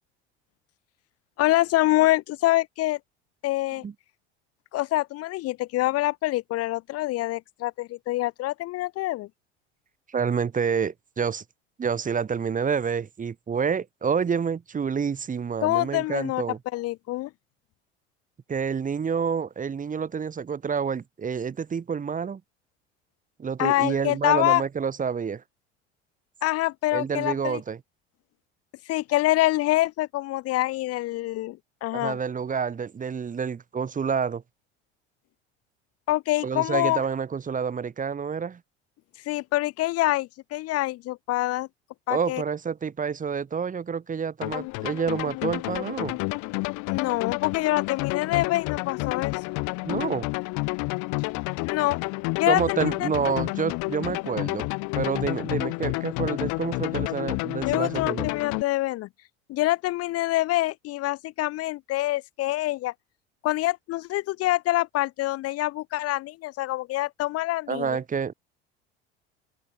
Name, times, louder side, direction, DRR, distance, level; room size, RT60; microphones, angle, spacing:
voice 1, 1.4-3.0 3.4-3.8 4.7-9.3 15.6-16.4 16.7-17.3 23.6-24.6 26.4-27.6 28.9-32.2 36.1-37.0 39.3-41.7 42.1-42.4 46.9-49.4 51.6-52.0 52.4-53.1 57.6-59.1 59.5-62.9 63.4-68.0, left 17 dB, 45° left, 0.7 m, -25 dB
voice 2, 10.1-11.4 11.8-16.6 18.5-22.4 23.4-25.4 26.9-27.8 31.9-34.4 36.4-38.6 42.1-46.2 49.8-50.3 52.5-54.7 54.9-58.3 67.7-68.3, right 6 dB, 25° right, 1.3 m, -28 dB
sound 1, 44.4-58.6, left 29 dB, 60° left, 2.6 m, -30 dB
open air
hypercardioid pair, 75°, 33 cm